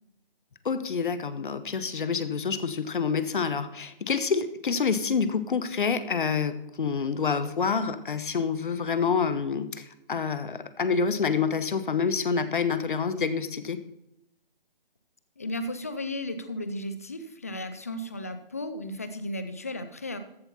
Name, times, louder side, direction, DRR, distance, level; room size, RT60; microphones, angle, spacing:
voice 1, 0.6-13.8, left 5 dB, 60° left, 12 dB, 1.1 m, -27 dB
voice 2, 15.4-20.2, left 1 dB, 15° left, 11 dB, 0.4 m, -34 dB
14.0 x 8.0 x 4.2 m, 0.86 s
figure-of-eight pair, 150°, 29 cm